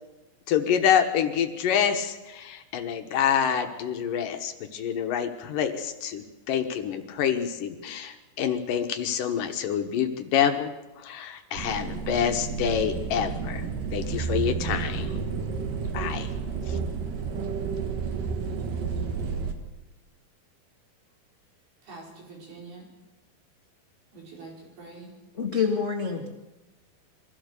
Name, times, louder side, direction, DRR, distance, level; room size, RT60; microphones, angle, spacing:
voice 1, 0.5-13.6 13.9-15.1 15.9-16.3 16.7-16.8, left 8 dB, 70° left, 6 dB, 2.6 m, -27 dB
sound 1, 11.6-19.5, right 5 dB, 65° right, 3.0 m, -31 dB
voice 2, 21.8-22.9 24.1-25.1, right 3 dB, 85° right, -2 dB, 6.9 m, -45 dB
voice 3, 25.3-26.3, left 6 dB, 50° left, 1 dB, 0.8 m, -26 dB
24.0 x 16.0 x 6.8 m, 1.1 s
omnidirectional pair, 4.3 m